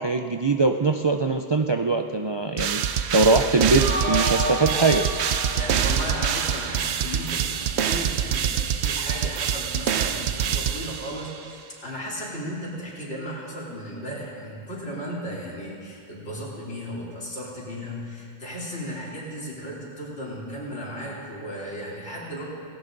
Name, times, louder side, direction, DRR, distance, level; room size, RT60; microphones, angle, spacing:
voice 1, 0.0-5.0, right 3 dB, 40° right, 5 dB, 0.3 m, -22 dB
sound 1, 2.6-11.4, right 8 dB, 80° right, 0.9 m, -25 dB
sound 2, 3.8-6.9, left 1 dB, 10° left, 1.3 m, -31 dB
voice 2, 5.5-22.5, equal, 90° left, -5 dB, 3.6 m, -35 dB
18.0 x 17.0 x 3.9 m, 2.6 s
omnidirectional pair, 1.1 m